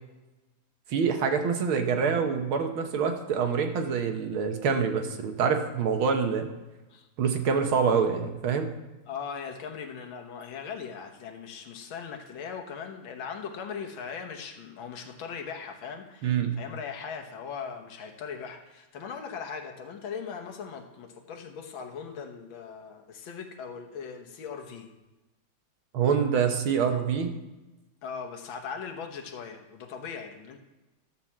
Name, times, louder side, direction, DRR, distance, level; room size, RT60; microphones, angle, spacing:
voice 1, 0.9-6.5 7.2-8.7 16.2-16.5 25.9-27.3, right 6 dB, 75° right, 5 dB, 1.8 m, -26 dB
voice 2, 9.1-24.9 28.0-30.6, left 6 dB, 70° left, 4 dB, 1.8 m, -39 dB
12.0 x 4.4 x 7.3 m, 1.1 s
omnidirectional pair, 2.3 m